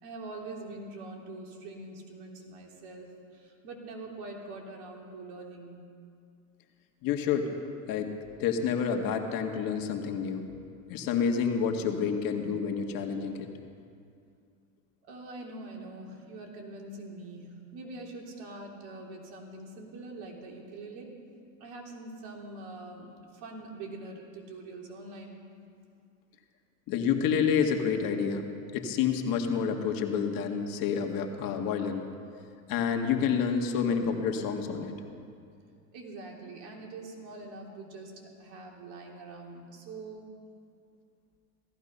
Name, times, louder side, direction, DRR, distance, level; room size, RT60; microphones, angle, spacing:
voice 1, 0.0-5.8 15.0-21.2 21.6-25.4 35.9-40.3, right 2 dB, 60° right, 0 dB, 3.5 m, -44 dB
voice 2, 7.0-7.5 7.9-8.1 8.4-10.5 10.9-13.5 26.9-28.5 28.7-32.1 32.7-34.9, left 6 dB, 50° left, 4 dB, 1.9 m, -28 dB
17.0 x 15.0 x 5.6 m, 2.3 s
supercardioid pair, 105°, 44 cm